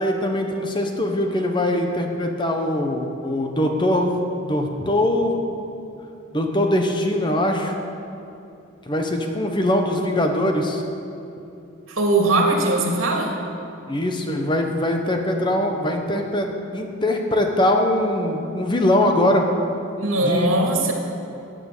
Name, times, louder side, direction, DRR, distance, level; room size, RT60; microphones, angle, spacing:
voice 1, 0.0-5.4 6.3-7.7 8.9-10.8 13.9-19.5 20.2-20.7, left 1 dB, 25° left, 3 dB, 1.1 m, -22 dB
voice 2, 11.9-13.4 20.0-20.9, right 2 dB, 85° right, 1 dB, 2.4 m, -20 dB
16.5 x 9.0 x 6.8 m, 2.7 s
head